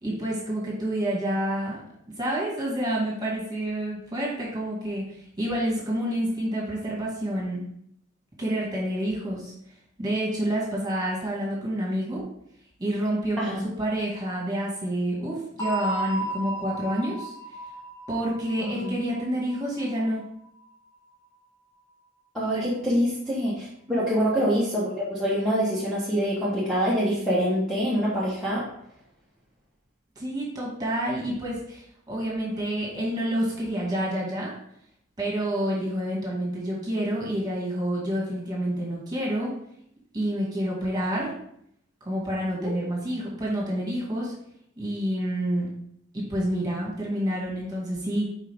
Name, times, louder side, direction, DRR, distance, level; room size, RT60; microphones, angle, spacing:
voice 1, 0.0-1.8 2.2-7.6 8.4-9.5 10.0-12.2 12.8-17.3 18.1-20.2 22.5-22.6 23.9-24.0 30.2-34.5 35.2-39.5 40.1-41.3 42.0-44.3 44.8-45.7 46.1-48.3, right 1 dB, 20° right, -4 dB, 2.1 m, -28 dB
sound 1, 15.6-20.2, right 1 dB, 20° left, 1.4 m, -34 dB
voice 2, 18.6-18.9 22.3-28.6 42.6-42.9, equal, ahead, -10 dB, 1.3 m, -25 dB
5.5 x 5.1 x 3.6 m, 0.72 s
head